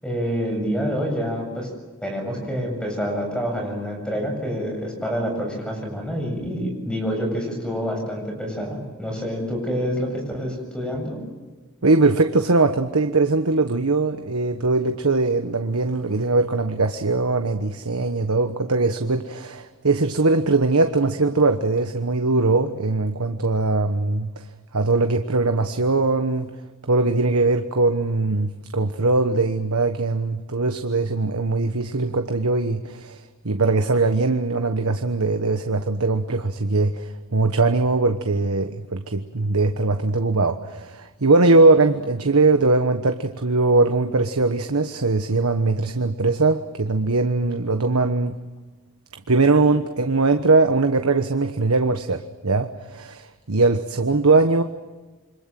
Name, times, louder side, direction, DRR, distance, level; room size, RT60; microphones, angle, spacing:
voice 1, 0.0-1.7 2.0-11.2, equal, 5° left, 2 dB, 7.7 m, -27 dB
voice 2, 11.8-24.4 24.7-26.5 26.9-48.4 49.3-54.6, right 3 dB, 90° right, 7 dB, 1.2 m, -21 dB
28.0 x 25.0 x 7.7 m, 1.3 s
head